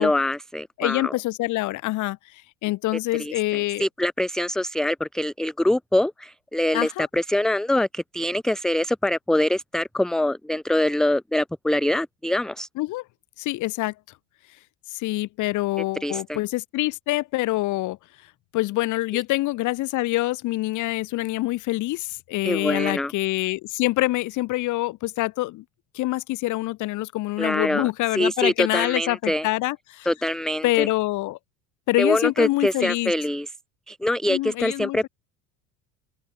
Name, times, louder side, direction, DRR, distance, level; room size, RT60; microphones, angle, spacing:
voice 1, 0.0-1.1 3.1-12.7 16.0-16.4 22.4-23.1 27.4-29.5 30.1-30.9 32.0-33.5 33.9-35.1, left 1 dB, ahead, 0.8 m, -24 dB
voice 2, 0.8-3.9 6.7-7.1 12.8-13.0 13.4-13.9 14.9-18.0 18.5-25.6 25.9-30.1 30.6-31.4 31.9-33.1 34.3-35.1, left 18 dB, 55° left, 2.7 m, -25 dB
open air
supercardioid pair, 125°, 36 cm